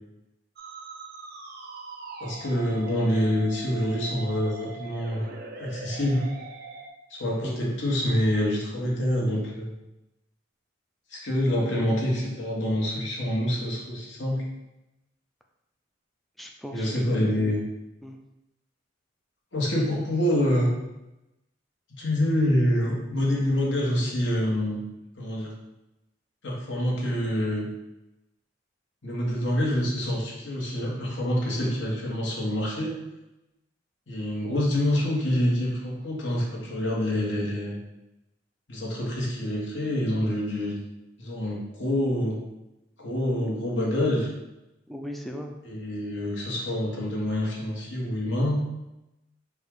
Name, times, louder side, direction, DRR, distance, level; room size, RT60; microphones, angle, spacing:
Musical instrument, 0.6-6.9, right 5 dB, 50° right, 0.5 m, -42 dB
voice 1, 2.2-5.3 5.6-6.2 7.1-9.7 11.1-14.4 16.7-17.6 19.5-20.7 22.0-24.8 25.2-25.5 26.4-27.6 29.0-33.0 34.1-37.8 38.7-40.8 41.2-42.4 43.0-44.3 45.6-48.6, left 1 dB, 65° left, -4 dB, 1.3 m, -26 dB
voice 2, 16.4-17.6 18.0-18.2 26.7-26.9 44.9-45.5, equal, ahead, 1 dB, 0.3 m, -38 dB
4.6 x 2.4 x 4.8 m, 0.95 s
head